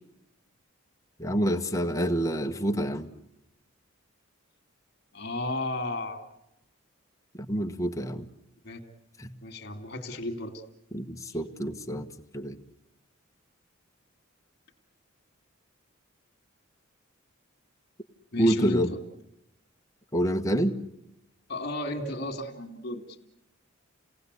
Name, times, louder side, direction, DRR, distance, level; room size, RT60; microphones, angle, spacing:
voice 1, 1.2-3.1 7.5-8.2 9.2-9.3 10.9-12.1 12.3-12.6 18.4-18.9 20.1-20.8, equal, 15° left, 5 dB, 1.2 m, -27 dB
voice 2, 5.1-6.2 8.6-8.8 9.4-10.6 18.3-19.0 21.5-23.2, left 2 dB, 50° left, 5 dB, 2.5 m, -33 dB
29.0 x 18.5 x 8.3 m, 0.87 s
head